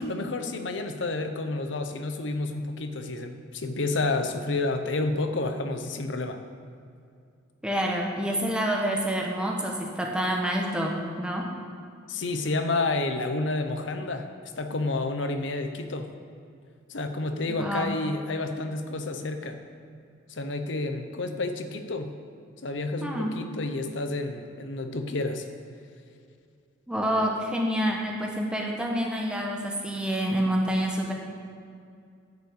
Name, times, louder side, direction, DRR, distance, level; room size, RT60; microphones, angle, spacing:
voice 1, 0.0-6.4 12.1-14.3 14.6-16.1 16.9-19.6 20.3-22.1 22.6-25.4, left 2 dB, 70° left, 7 dB, 0.8 m, -30 dB
voice 2, 7.6-11.5 17.5-17.9 23.0-23.4 26.9-31.1, equal, 5° right, -1 dB, 1.2 m, -27 dB
10.5 x 5.5 x 8.2 m, 2.4 s
head